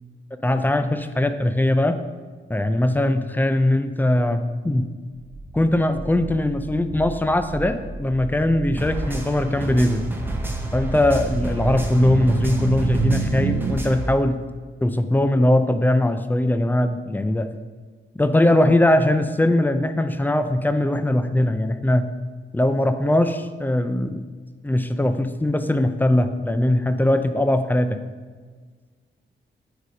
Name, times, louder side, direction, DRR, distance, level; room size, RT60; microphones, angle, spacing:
voice 1, 0.4-2.0 2.5-4.9 5.5-10.0 10.7-14.4 14.8-17.5 18.1-22.1 22.5-24.2 24.6-28.0, left 1 dB, 10° left, 9 dB, 0.4 m, -20 dB
sound 1, 5.3-13.7, right 4 dB, 65° right, 0.6 m, -29 dB
sound 2, 8.8-14.1, right 1 dB, 10° right, 0.8 m, -32 dB
4.8 x 4.2 x 5.1 m, 1.5 s
cardioid pair, 85°, 20 cm